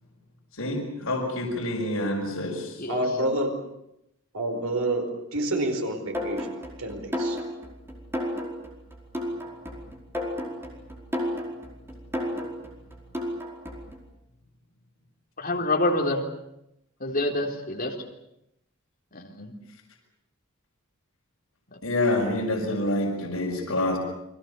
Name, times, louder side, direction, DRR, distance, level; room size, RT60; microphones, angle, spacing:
voice 1, 0.6-2.8 21.8-24.0, left 1 dB, 70° left, -3 dB, 5.9 m, -27 dB
voice 2, 2.9-3.5 4.3-6.5 6.8-7.4, right 1 dB, 85° right, 5 dB, 5.0 m, -28 dB
sound 1, 6.1-14.0, equal, 10° right, 5.0 m, -33 dB
voice 3, 15.4-16.2 17.0-17.9 19.1-19.5, left 2 dB, 40° left, 1 dB, 3.7 m, -27 dB
29.5 x 22.5 x 7.0 m, 0.82 s
head